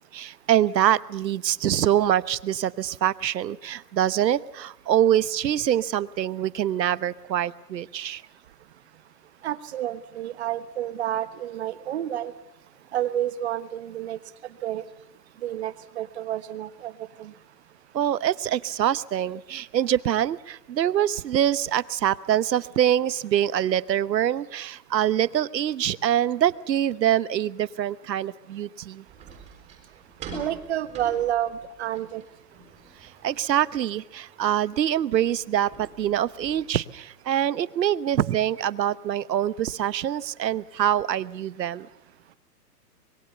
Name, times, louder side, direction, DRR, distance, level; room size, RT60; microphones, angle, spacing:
voice 1, 0.1-8.2 17.9-29.0 33.0-41.9, right 11 dB, 80° right, 17 dB, 1.1 m, -25 dB
voice 2, 9.4-12.3 12.9-14.2 14.6-14.8 15.4-16.9 17.2-17.3 30.3-32.2, right 11 dB, 40° right, 13 dB, 1.3 m, -29 dB
sound 1, 29.1-36.6, right 3 dB, 15° right, 6.0 m, -46 dB
25.5 x 22.0 x 6.9 m, 0.91 s
hypercardioid pair, 165°, 50 cm